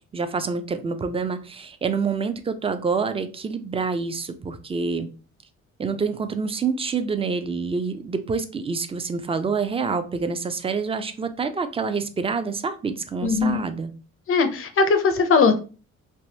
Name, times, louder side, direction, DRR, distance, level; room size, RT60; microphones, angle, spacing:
voice 1, 0.1-5.1 5.8-13.9, right 5 dB, 20° right, 10 dB, 0.4 m, -27 dB
voice 2, 13.2-13.6 14.3-15.6, left 4 dB, 45° left, 8 dB, 0.5 m, -19 dB
3.4 x 2.5 x 2.7 m, 0.36 s
cardioid pair, 90°, 30 cm